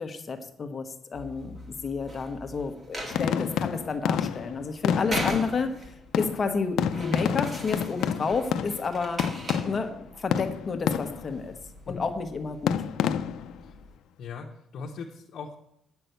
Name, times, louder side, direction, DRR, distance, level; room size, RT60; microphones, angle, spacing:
voice 1, 0.0-9.3 9.6-11.5 11.9-12.7, left 4 dB, 35° left, 7 dB, 1.1 m, -31 dB
sound 1, 1.1-14.0, right 1 dB, 30° right, 2.1 m, -41 dB
sound 2, 3.1-5.8 6.1-10.0 10.3-11.4 12.7-13.6, left 9 dB, 85° left, 0.5 m, -29 dB
voice 2, 14.2-15.6, left 5 dB, 60° left, -1 dB, 1.1 m, -39 dB
8.9 x 6.0 x 8.1 m, 0.76 s
cardioid pair, 145°, 0 cm